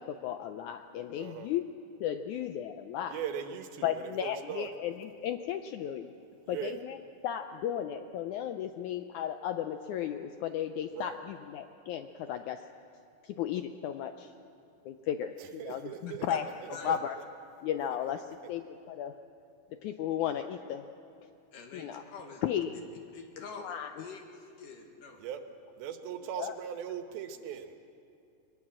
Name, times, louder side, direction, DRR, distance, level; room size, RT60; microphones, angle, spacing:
voice 1, 0.0-1.6 2.0-3.2 3.8-6.1 6.5-7.0 7.2-12.6 13.2-14.3 14.8-16.4 16.8-17.2 17.6-19.1 19.7-20.8 21.7-22.0 22.4-22.8 23.6-24.0 26.4-26.6, left 10 dB, 85° left, 8 dB, 1.7 m, -35 dB
voice 2, 1.2-1.5 3.1-4.7 6.5-6.8 10.9-11.2 15.4-17.0 25.2-25.4 25.8-27.8, right 9 dB, 85° right, 7 dB, 3.1 m, -39 dB
voice 3, 21.5-22.4 23.1-25.2, left 4 dB, 65° left, 3 dB, 3.3 m, -46 dB
22.5 x 21.0 x 7.5 m, 2.6 s
omnidirectional pair, 4.2 m